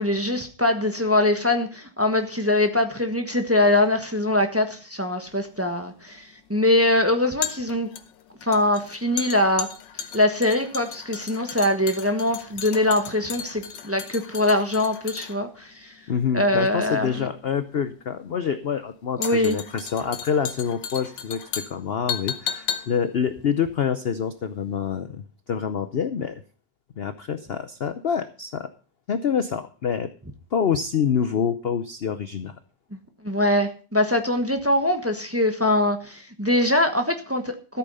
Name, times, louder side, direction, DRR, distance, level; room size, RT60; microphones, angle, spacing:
voice 1, 0.0-7.9 8.5-9.7 10.1-15.9 16.3-17.2 19.2-19.6 33.2-37.8, left 1 dB, 10° right, 1.1 m, -22 dB
sound 1, 5.3-24.5 24.8-24.9, left 8 dB, 80° left, 1.6 m, -36 dB
voice 2, 16.1-26.4 27.0-28.7 29.1-30.1 30.5-32.5, left 7 dB, 60° left, 0.6 m, -26 dB
14.0 x 8.7 x 5.5 m
omnidirectional pair, 2.0 m